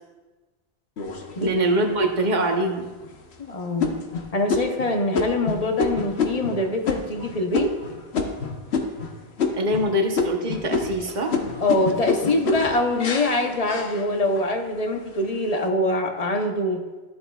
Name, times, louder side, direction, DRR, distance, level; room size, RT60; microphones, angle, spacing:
sound 1, 1.0-1.8 2.4-2.5 3.0-3.3 3.8-9.1 9.4-9.9 10.1-14.5 14.9-15.5, left 4 dB, 75° left, 1.2 m, -27 dB
voice 1, 1.4-2.9 9.5-11.4, right 1 dB, 45° right, 3 dB, 1.0 m, -23 dB
voice 2, 3.4-3.9 4.3-7.7 11.6-16.8, left 2 dB, 40° left, 3 dB, 0.9 m, -24 dB
13.0 x 7.7 x 2.3 m, 1.2 s
omnidirectional pair, 1.1 m